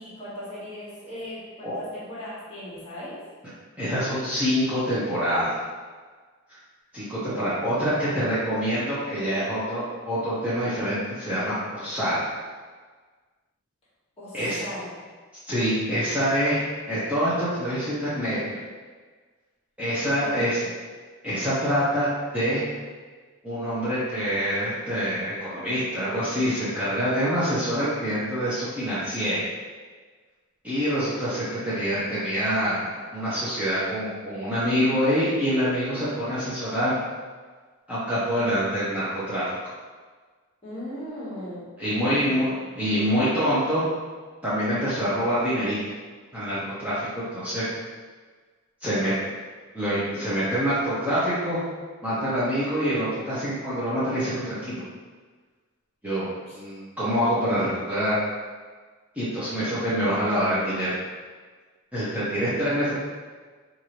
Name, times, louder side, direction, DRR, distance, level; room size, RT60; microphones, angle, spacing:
voice 1, 0.0-3.2 7.0-7.1 7.6-8.2 14.2-14.9 20.2-20.7 40.6-41.7 42.0-42.3 42.7-42.9 56.5-56.6, left 1 dB, 25° left, -9 dB, 1.3 m, -38 dB
voice 2, 3.8-5.6 6.5-6.6 6.9-12.2 14.3-14.6 15.5-16.6 16.9-18.6 19.8-20.6 21.2-22.6 23.4-29.4 30.6-37.0 37.9-39.5 41.8-43.9 44.4-45.8 46.3-47.6 48.8-49.1 49.7-51.6 52.0-54.8 56.0-58.2 59.1-60.9 61.9-63.0, equal, 5° right, -12 dB, 0.7 m, -26 dB
4.6 x 2.6 x 3.0 m, 1.4 s
head